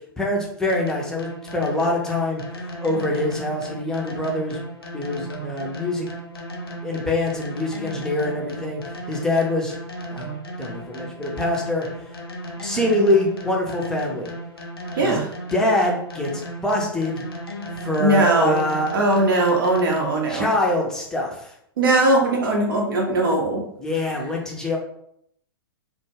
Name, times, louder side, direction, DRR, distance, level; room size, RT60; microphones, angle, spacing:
voice 1, 0.2-4.6 4.9-6.1 6.8-8.8 9.1-9.8 10.1-10.3 10.6-12.1 12.6-14.3 15.0-15.2 15.5-17.2 17.8-18.9 20.3-21.5 23.8-24.8, left 1 dB, 5° left, -1 dB, 0.5 m, -24 dB
sound 1, 0.7-20.3, right 1 dB, 75° left, 0.5 m, -35 dB
voice 2, 14.9-15.3 18.0-18.6 18.9-20.5 21.8-23.6, right 2 dB, 60° right, 0 dB, 0.6 m, -19 dB
2.2 x 2.1 x 3.2 m, 0.71 s
figure-of-eight pair, 105°, 13 cm